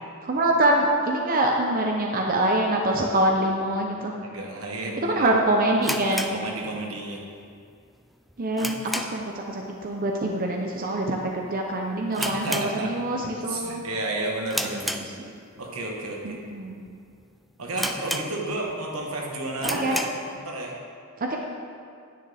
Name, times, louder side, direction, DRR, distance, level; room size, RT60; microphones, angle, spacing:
voice 1, 0.2-4.2 5.0-6.4 8.4-13.8 14.6-15.3 16.2-16.8 19.6-20.0 21.2-21.4, right 1 dB, 40° right, 1 dB, 0.7 m, -25 dB
voice 2, 4.2-5.3 6.3-7.2 12.2-15.1 15.6-16.4 17.6-20.1 20.3-20.8, right 2 dB, 80° right, -1 dB, 1.4 m, -32 dB
sound 1, 5.8-7.2 7.4-7.5 8.0-9.4 9.7-10.0 10.3-10.4 11.0-11.3 11.6-11.7 12.1-13.3 13.6-13.9 14.5-15.6 16.2-16.3 16.9-17.0 17.2-17.3 17.8-18.7 19.1-19.2 19.6-20.3, equal, ahead, 0.3 m, -32 dB
10.5 x 9.0 x 3.4 m, 2.3 s
head